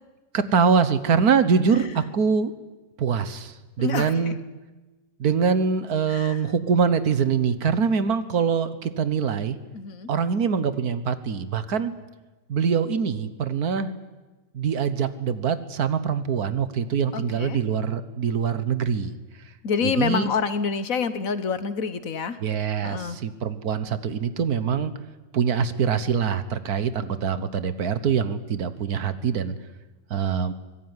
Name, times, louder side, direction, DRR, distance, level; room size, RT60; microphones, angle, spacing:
voice 1, 0.3-2.5 3.0-4.4 5.2-9.6 10.1-11.9 12.5-13.9 14.5-19.1 19.8-20.3 22.4-24.9 25.3-29.5 30.1-30.5, right 6 dB, 90° right, 13 dB, 1.8 m, -24 dB
voice 2, 3.8-4.3 6.1-6.4 9.7-10.1 17.1-17.6 19.6-22.4 22.8-23.2, left 6 dB, 65° left, 13 dB, 1.6 m, -27 dB
24.5 x 19.0 x 9.8 m, 1.2 s
omnidirectional pair, 1.6 m